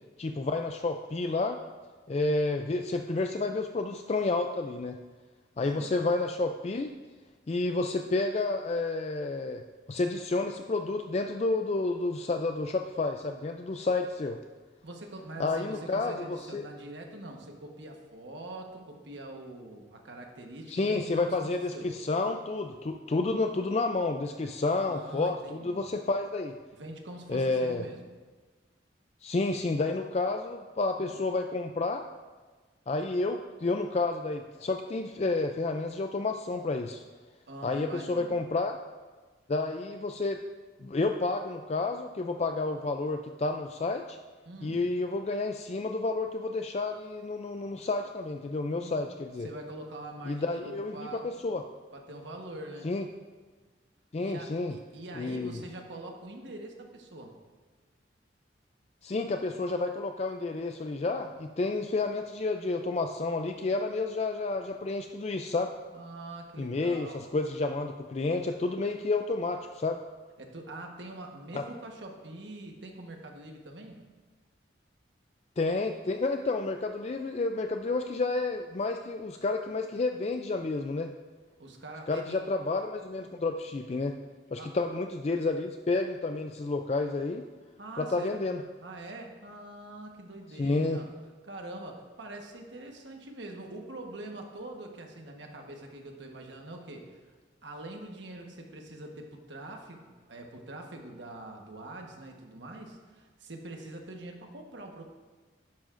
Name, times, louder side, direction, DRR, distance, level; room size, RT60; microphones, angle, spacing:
voice 1, 0.2-1.6 2.1-5.0 5.6-6.9 7.5-9.6 9.9-14.4 15.4-16.7 20.7-26.6 27.3-27.8 29.2-32.0 32.9-37.0 37.6-38.8 39.5-40.4 40.8-44.2 44.6-49.5 50.3-51.6 52.8-53.0 54.1-54.8 55.2-55.6 59.0-65.7 66.6-70.0 71.5-71.6 75.6-81.1 82.1-84.2 84.5-87.4 88.0-88.6 90.6-91.0, left 3 dB, 35° left, 5 dB, 0.3 m, -30 dB
voice 2, 5.6-6.0 14.8-21.4 21.7-21.9 24.9-25.8 26.7-28.0 31.0-31.2 37.5-38.4 44.4-44.9 48.8-49.1 49.4-51.2 51.9-52.9 54.2-57.4 65.9-67.3 70.4-74.2 81.6-82.4 84.6-84.8 87.8-88.4 88.8-91.1 91.4-97.2 97.6-105.0, right 2 dB, 75° right, 2 dB, 1.2 m, -44 dB
12.0 x 10.5 x 2.6 m, 1.3 s
head